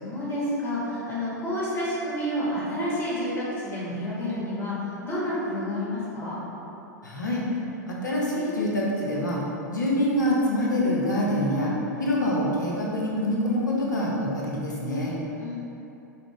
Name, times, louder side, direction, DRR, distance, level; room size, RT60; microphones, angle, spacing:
voice 1, 0.0-6.4 15.4-15.6, left 1 dB, 25° left, -8 dB, 1.5 m, -29 dB
voice 2, 7.0-7.5 7.9-9.4 9.7-11.7 12.0-15.1, left 1 dB, 80° left, -4 dB, 0.9 m, -25 dB
5.5 x 2.4 x 3.3 m, 2.9 s
figure-of-eight pair, 95°, 10 cm